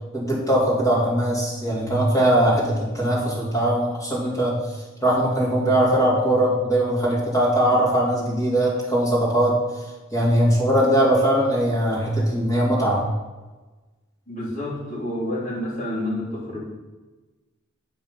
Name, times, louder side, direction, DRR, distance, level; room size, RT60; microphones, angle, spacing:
voice 1, 0.1-4.6 5.0-9.6 10.1-13.0, right 1 dB, 15° left, -6 dB, 2.8 m, -20 dB
voice 2, 14.3-16.6, left 1 dB, 45° left, -7 dB, 3.1 m, -29 dB
8.7 x 4.7 x 5.6 m, 1.2 s
head